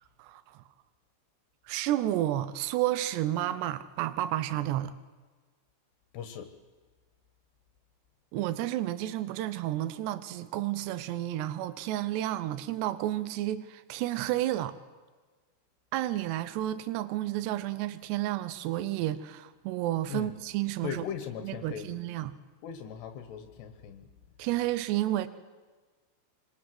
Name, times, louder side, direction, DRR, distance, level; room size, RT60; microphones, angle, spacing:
voice 1, 1.7-4.9 8.3-14.7 15.9-21.0 21.4-22.4 24.4-25.3, right 14 dB, 85° right, 3.1 m, -31 dB
voice 2, 6.1-6.5 20.1-20.4 20.8-22.0 22.6-24.1, left 8 dB, 80° left, 3.6 m, -38 dB
27.0 x 25.5 x 7.9 m
omnidirectional pair, 4.8 m